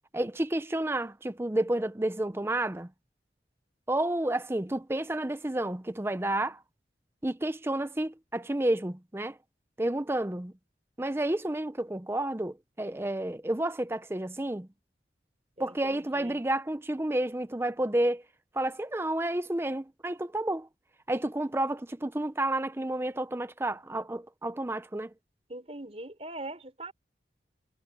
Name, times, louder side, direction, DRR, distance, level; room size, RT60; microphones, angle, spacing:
voice 1, 0.1-2.9 3.9-6.6 7.2-9.4 9.8-10.5 11.0-14.7 15.6-18.2 18.5-20.7 21.1-25.1, right 1 dB, 15° right, 0.6 m, -30 dB
voice 2, 15.6-16.4 25.5-26.9, right 2 dB, 35° right, 4.4 m, -42 dB
head